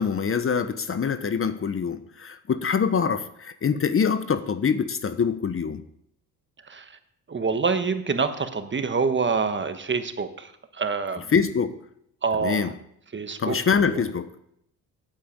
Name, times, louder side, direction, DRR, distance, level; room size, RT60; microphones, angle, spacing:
voice 1, 0.0-5.8 11.3-11.7 12.4-12.7 13.4-14.3, left 6 dB, 35° left, 12 dB, 0.8 m, -24 dB
voice 2, 7.3-10.5 10.8-11.3 12.2-12.7 13.1-14.0, right 5 dB, 30° right, 8 dB, 1.3 m, -26 dB
8.9 x 7.6 x 8.7 m, 0.72 s
cardioid pair, 85°, 36 cm